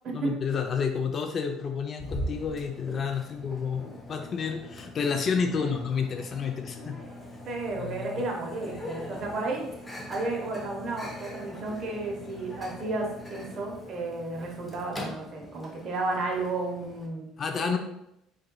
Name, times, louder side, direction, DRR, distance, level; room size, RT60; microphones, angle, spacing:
voice 1, 0.1-7.0 7.7-8.2 17.4-17.8, left 6 dB, 35° left, 5 dB, 0.4 m, -30 dB
Microwave oven, 2.0-17.1, equal, 10° left, 0.8 m, -42 dB
voice 2, 7.5-9.6 10.1-17.3 17.5-17.8, right 2 dB, 45° right, 0 dB, 1.0 m, -33 dB
4.2 x 3.9 x 2.2 m, 0.82 s
cardioid pair, 125°, 0 cm